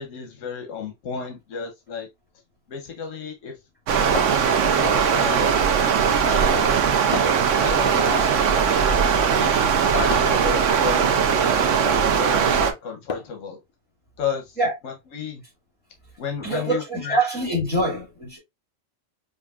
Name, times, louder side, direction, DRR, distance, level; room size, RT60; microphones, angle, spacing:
voice 1, 0.0-2.1 2.7-3.6 4.5-5.5 6.2-7.0 7.5-8.7 9.3-11.4 11.8-13.6 14.2-14.6 14.8-15.4 16.2-17.2, left 6 dB, 90° left, 1.1 m, -33 dB
Stream, 3.9-12.7, right 7 dB, 80° right, 1.0 m, -20 dB
sound 1, 4.1-5.0 7.1-7.6 10.1-10.5 13.1-13.5, left 5 dB, 60° left, 0.3 m, -33 dB
voice 2, 16.4-18.4, right 2 dB, 10° left, 1.7 m, -24 dB
5.1 x 2.5 x 2.3 m
omnidirectional pair, 1.3 m